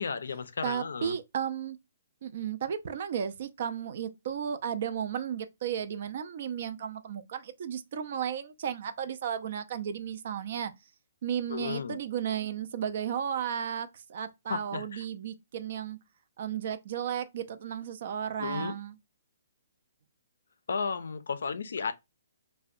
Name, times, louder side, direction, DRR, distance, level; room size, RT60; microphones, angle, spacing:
voice 1, 0.0-1.2 11.5-12.0 14.5-15.1 18.4-18.8 20.7-21.9, left 5 dB, 80° left, 0.3 m, -33 dB
voice 2, 0.6-1.8 2.2-10.7 11.2-16.0 16.4-19.0, right 8 dB, 50° right, 0.3 m, -34 dB
2.6 x 2.1 x 2.3 m
hypercardioid pair, 160°, 0 cm